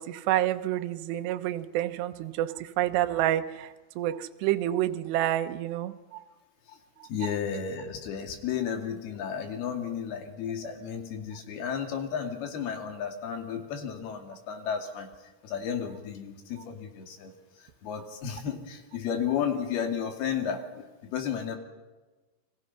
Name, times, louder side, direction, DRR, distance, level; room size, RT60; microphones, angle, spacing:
voice 1, 0.0-6.2 7.2-7.4 10.6-10.8, right 13 dB, 75° right, 9 dB, 3.0 m, -29 dB
voice 2, 7.1-15.1 15.4-17.3 17.8-20.9 21.1-21.6, left 7 dB, 60° left, 5 dB, 4.2 m, -33 dB
30.0 x 23.5 x 5.7 m, 1.2 s
omnidirectional pair, 5.3 m